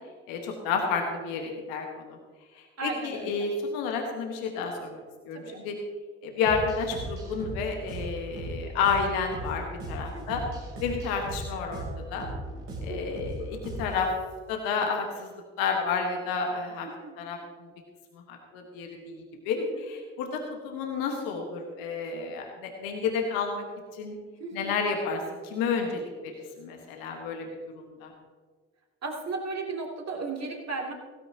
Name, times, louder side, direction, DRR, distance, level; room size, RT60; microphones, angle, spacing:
voice 1, 0.3-2.2 2.5-5.7 6.2-10.4 10.8-11.8 12.1-12.3 12.8-14.1 14.5-16.9 17.2-17.7 18.3-23.6 23.9-24.1 24.5-27.5 27.7-28.1, left 5 dB, 80° left, 2 dB, 1.5 m, -31 dB
voice 2, 2.8-3.5 5.3-5.6 10.1-10.4 12.9-13.2 16.8-17.1 19.6-19.8 24.4-24.7 29.0-30.9, right 4 dB, 45° right, 0 dB, 2.9 m, -36 dB
sound 1, 6.4-14.1, right 1 dB, 80° right, 3.6 m, -37 dB
16.5 x 13.5 x 2.9 m, 1.5 s
hypercardioid pair, 40°, 35 cm